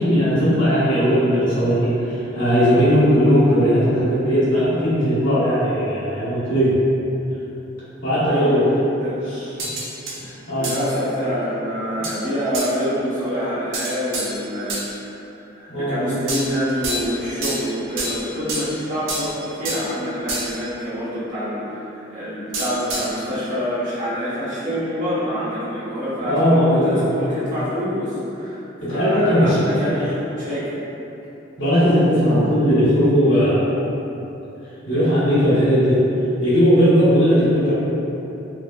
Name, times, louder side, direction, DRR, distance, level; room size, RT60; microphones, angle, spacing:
voice 1, 0.0-6.8 8.0-8.8 9.2-9.5 10.2-10.7 15.7-16.1 26.2-27.1 28.8-30.0 31.6-33.7 34.8-36.0 36.4-37.7, equal, 70° left, -13 dB, 1.3 m, -18 dB
sound 1, 9.6-10.2 10.6-10.9 12.0-12.2 12.5-12.7 13.7-14.9 16.3-17.1 17.4-18.7 19.1-19.9 20.3-20.7 22.5-23.2, right 2 dB, 80° right, 0.5 m, -28 dB
voice 2, 10.6-15.1 15.5-21.8 22.1-28.6 28.9-30.8, equal, 40° right, -12 dB, 1.0 m, -26 dB
3.4 x 2.1 x 2.3 m, 2.9 s
head